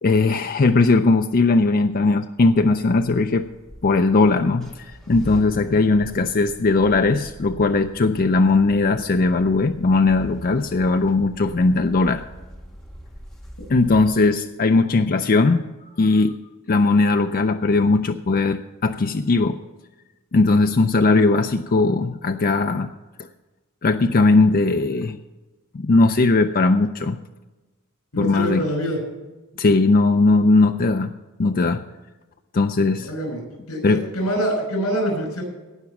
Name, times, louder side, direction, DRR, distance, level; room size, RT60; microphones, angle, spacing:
voice 1, 0.0-3.4 3.8-12.2 13.7-15.6 16.0-16.4 16.7-19.6 20.3-22.9 23.8-25.2 25.7-27.2 28.2-28.7 29.6-31.1 31.4-31.8 32.5-33.1 33.8-34.0, left 3 dB, 40° left, 7 dB, 0.5 m, -18 dB
sound 1, 2.5-14.1, equal, ahead, 1.7 m, -42 dB
voice 2, 28.1-29.0 33.0-33.4 33.7-35.4, equal, 80° left, 2 dB, 5.8 m, -25 dB
18.0 x 6.0 x 7.1 m, 1.2 s
head